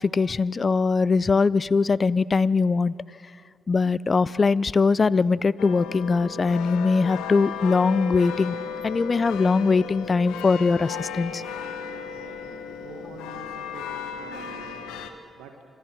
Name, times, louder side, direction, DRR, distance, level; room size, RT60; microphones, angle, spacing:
voice 1, 0.0-2.9 3.7-8.6 8.8-11.4, left 4 dB, 40° left, 21 dB, 0.4 m, -21 dB
sound 1, 5.6-15.1, left 6 dB, 75° left, 1.2 m, -35 dB
voice 2, 11.9-14.8 15.4-15.6, right 5 dB, 75° right, 5 dB, 1.5 m, -46 dB
26.0 x 13.0 x 7.7 m, 2.4 s
hypercardioid pair, 40°, 0 cm